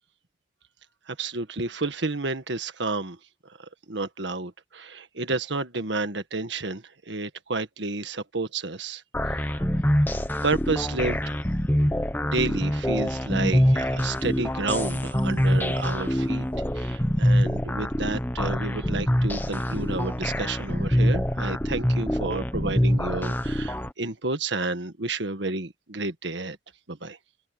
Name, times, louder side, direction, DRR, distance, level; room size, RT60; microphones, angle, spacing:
voice 1, 1.1-3.2 3.9-9.6 10.1-11.2 12.2-16.5 16.7-26.6 26.9-27.2, right 3 dB, 80° right, 1.7 m, -31 dB
sound 1, 9.1-23.9, equal, 10° left, 1.3 m, -25 dB
open air
head